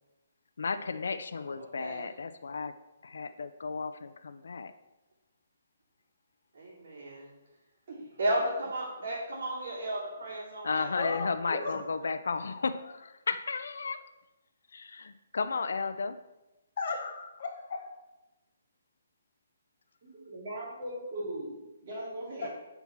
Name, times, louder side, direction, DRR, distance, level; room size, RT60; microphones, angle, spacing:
voice 1, 0.6-2.7 3.0-4.7 10.6-14.0 14.7-16.2, left 4 dB, 75° left, 11 dB, 0.5 m, -34 dB
voice 2, 1.6-2.0 6.5-7.3 8.2-11.1, right 1 dB, 65° right, -9 dB, 2.8 m, -34 dB
voice 3, 11.0-11.8 16.8-17.8 22.4-22.5, left 3 dB, 45° left, 2 dB, 1.8 m, -35 dB
voice 4, 20.0-22.5, right 1 dB, 40° right, -3 dB, 2.6 m, -39 dB
7.2 x 4.6 x 5.8 m, 1.0 s
hypercardioid pair, 170°, 0 cm